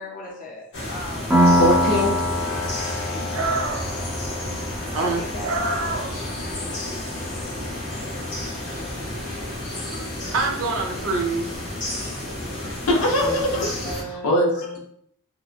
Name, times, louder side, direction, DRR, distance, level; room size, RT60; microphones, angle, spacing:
voice 1, 0.0-1.7 2.5-3.3 4.6-5.5 6.2-7.1 9.9-10.4 11.7-12.2 12.6-12.7 13.5-14.8, left 1 dB, 40° left, -2 dB, 0.6 m, -38 dB
sound 1, 0.7-14.0, left 1 dB, 55° left, 1.0 m, -31 dB
Piano, 1.3-8.7, equal, 10° right, 0.5 m, -25 dB
voice 2, 1.6-2.1 12.9-13.6 14.2-14.5, left 1 dB, 80° left, -1 dB, 0.7 m, -20 dB
voice 3, 3.3-4.1 4.9-6.1 10.3-11.6, right 3 dB, 65° right, 1 dB, 0.5 m, -26 dB
2.8 x 2.2 x 2.4 m, 0.69 s
head